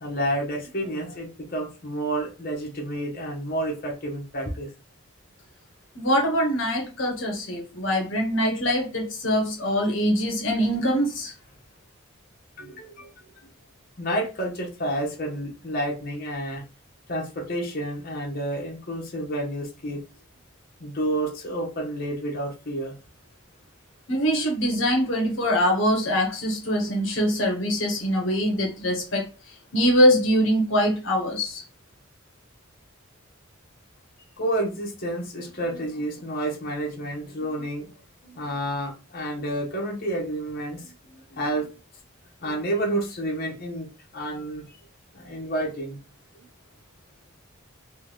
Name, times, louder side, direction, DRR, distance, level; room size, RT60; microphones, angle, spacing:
voice 1, 0.0-4.7 12.6-13.1 14.0-16.6 17.1-20.0 20.8-22.9 34.4-37.9 38.2-41.7 42.4-44.6 45.1-46.0, right 1 dB, 45° left, -1 dB, 1.0 m, -30 dB
voice 2, 6.0-11.3 24.1-29.2 29.7-31.6, equal, 70° left, 1 dB, 0.9 m, -23 dB
3.4 x 2.2 x 3.1 m, 0.32 s
head